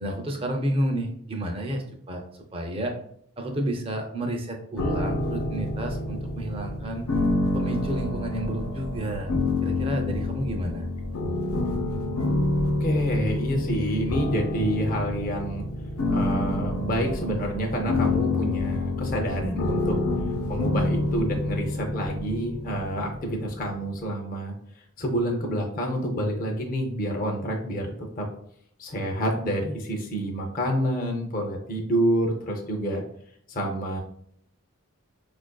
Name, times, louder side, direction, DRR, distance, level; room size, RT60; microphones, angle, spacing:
voice 1, 0.0-2.2 2.5-2.9 3.4-7.1 7.5-9.3 9.6-10.9, right 1 dB, 25° right, 3 dB, 0.5 m, -30 dB
sound 1, 4.8-23.7, left 2 dB, 90° left, 0.6 m, -28 dB
voice 2, 12.8-15.6 16.1-20.0 20.5-24.5 25.0-27.9 28.2-28.3 28.8-33.0 33.5-34.0, equal, 40° left, 1 dB, 0.5 m, -28 dB
5.0 x 2.5 x 2.2 m, 0.66 s
head